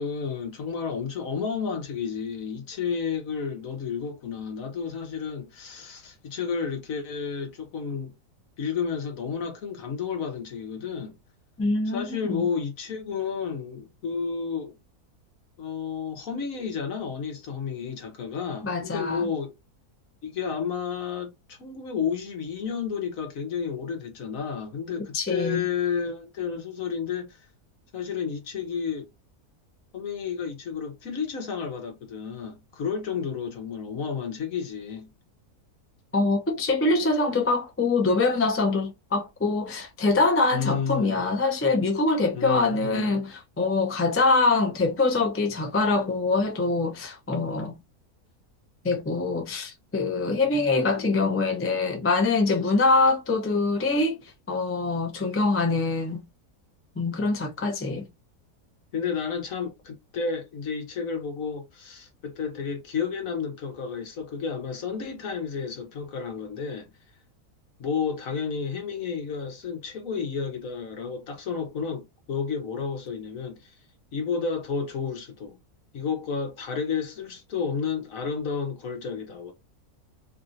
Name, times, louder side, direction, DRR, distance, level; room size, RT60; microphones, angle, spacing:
voice 1, 0.0-8.1 8.6-11.1 11.9-14.8 15.6-19.5 20.2-27.4 27.9-29.1 29.9-35.1 40.5-41.2 42.3-43.2 50.7-51.4 58.9-66.9 67.8-73.8 74.1-75.6 75.9-79.5, left 6 dB, 65° left, 1.4 m, -31 dB
voice 2, 11.6-12.5 18.6-19.2 25.1-25.6 36.1-47.8 48.8-54.2 54.5-56.2 57.0-58.1, left 3 dB, 20° left, 0.3 m, -24 dB
3.2 x 2.7 x 2.6 m
omnidirectional pair, 1.6 m